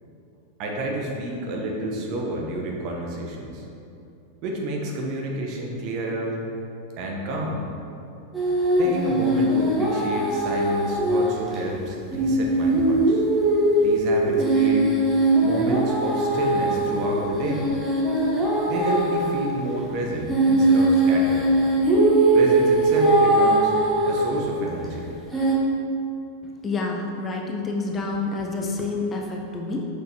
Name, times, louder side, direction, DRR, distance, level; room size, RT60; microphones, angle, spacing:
voice 1, 0.6-3.6 4.4-6.4 7.0-7.6 8.8-13.2 13.8-14.9 15.4-17.7 18.7-21.5 22.3-23.7 24.0-25.1, right 1 dB, 40° right, -1 dB, 1.0 m, -29 dB
sound 1, 8.3-11.3 11.5-11.6 12.1-19.4 20.3-24.5 25.3-25.5, right 1 dB, 5° right, 1.4 m, -20 dB
voice 2, 26.6-29.9, left 3 dB, 20° left, 1 dB, 0.6 m, -28 dB
6.3 x 5.6 x 2.9 m, 2.7 s
figure-of-eight pair, 90°, 0 cm